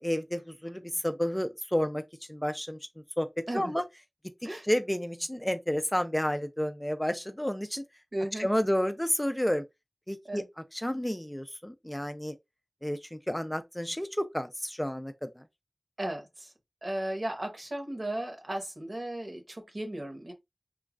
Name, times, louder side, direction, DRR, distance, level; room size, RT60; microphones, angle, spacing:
voice 1, 0.0-2.0 2.3-2.8 3.2-3.3 3.5-3.8 4.6-7.8 8.4-9.6 10.1-10.4 10.7-12.3 12.8-15.4, equal, 10° left, 0.4 m, -30 dB
voice 2, 8.1-8.5 10.2-10.5 16.0-16.5 16.8-20.3, right 1 dB, 60° right, 1.0 m, -35 dB
3.1 x 2.3 x 2.4 m
wide cardioid pair, 45°, 0 cm